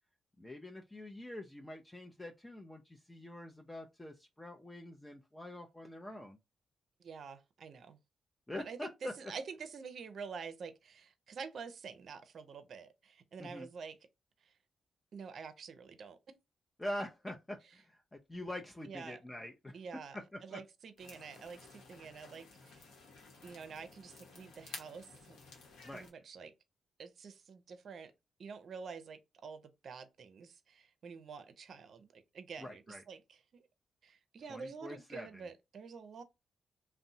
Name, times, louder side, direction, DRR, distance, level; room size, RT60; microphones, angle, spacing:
voice 1, 0.4-6.4 8.5-9.3 13.4-13.7 16.8-19.8 20.1-20.6 25.8-26.1 32.6-33.0 34.5-35.4, left 1 dB, 15° left, 0.5 m, -45 dB
voice 2, 7.0-8.0 8.6-14.0 14.4-14.5 15.1-16.2 18.8-19.2 19.7-22.9 23.4-25.4 25.9-26.5 27.0-28.1 28.4-33.6 34.0-36.2, right 5 dB, 65° right, 0.5 m, -48 dB
sound 1, 21.0-26.1, left 3 dB, 80° left, 0.9 m, -54 dB
2.6 x 2.1 x 2.6 m
supercardioid pair, 55°, 0 cm